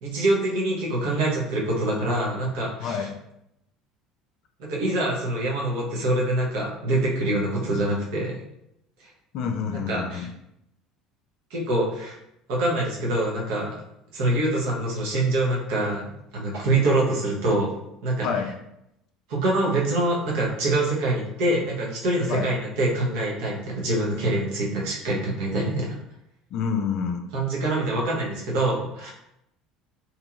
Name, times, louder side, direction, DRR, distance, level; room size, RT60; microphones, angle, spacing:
voice 1, 0.0-3.1 4.6-8.4 9.7-10.3 11.5-12.2 12.5-13.8 14.1-16.0 16.3-17.7 18.0-18.3 19.3-26.0 27.3-29.1, right 2 dB, 60° right, -4 dB, 0.8 m, -25 dB
voice 2, 2.8-3.1 9.3-10.3 18.2-18.5 22.3-22.5 26.5-27.3, left 6 dB, 50° left, 5 dB, 0.3 m, -28 dB
2.8 x 2.6 x 2.4 m, 0.81 s
figure-of-eight pair, 60°, 0 cm